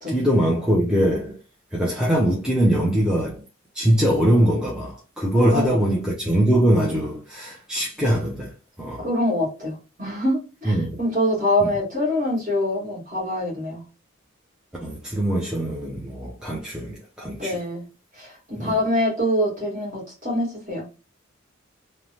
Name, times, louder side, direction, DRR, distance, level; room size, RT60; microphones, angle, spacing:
voice 1, 0.1-1.4 1.7-3.4 3.7-8.5 8.8-9.0 10.7-11.0 11.6-11.7 14.8-17.6 18.6-18.8, right 1 dB, 5° right, 0.4 m, -22 dB
voice 2, 5.4-5.8 9.0-13.8 17.3-17.9 18.1-20.8, left 1 dB, 35° right, 1.5 m, -25 dB
3.1 x 2.0 x 2.7 m
head